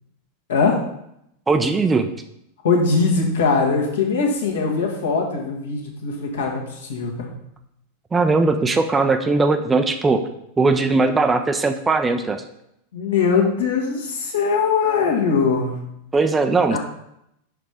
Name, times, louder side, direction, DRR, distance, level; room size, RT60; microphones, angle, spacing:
voice 1, 0.5-0.8 2.6-7.3 12.9-15.8 16.7-16.8, left 5 dB, 65° left, 0 dB, 1.5 m, -21 dB
voice 2, 1.5-2.1 8.1-10.3 10.6-12.4 16.1-16.8, right 3 dB, 15° right, 7 dB, 0.5 m, -19 dB
5.4 x 5.0 x 4.9 m, 0.78 s
figure-of-eight pair, 90°, 0 cm